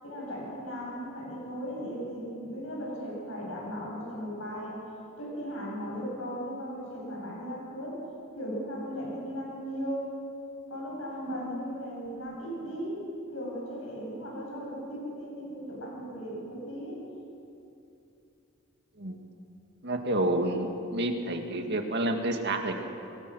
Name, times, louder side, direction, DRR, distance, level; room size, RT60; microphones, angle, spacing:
voice 1, 0.0-4.8 5.2-8.0 8.3-10.1 10.7-13.0 13.3-16.9, equal, 75° left, -4 dB, 7.9 m, -37 dB
voice 2, 19.8-22.7, right 1 dB, 55° right, 4 dB, 2.2 m, -29 dB
26.5 x 19.5 x 6.4 m, 2.7 s
head